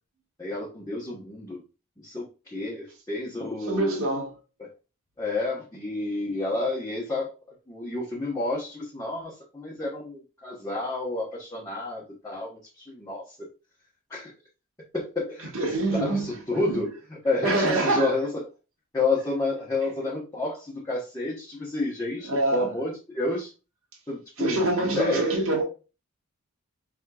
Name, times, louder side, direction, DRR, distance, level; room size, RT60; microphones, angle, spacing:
voice 1, 0.4-1.6 2.0-4.0 4.6-4.7 5.2-7.3 7.7-13.5 14.1-14.3 14.9-15.5 15.9-18.4 18.9-23.5 24.1-25.4, left 2 dB, 15° left, 1.2 m, -30 dB
voice 2, 3.6-4.3 15.5-16.4 16.7-16.8 17.4-18.1 22.3-22.7 24.4-25.6, right 2 dB, 70° right, 1.7 m, -25 dB
5.2 x 3.6 x 2.4 m
head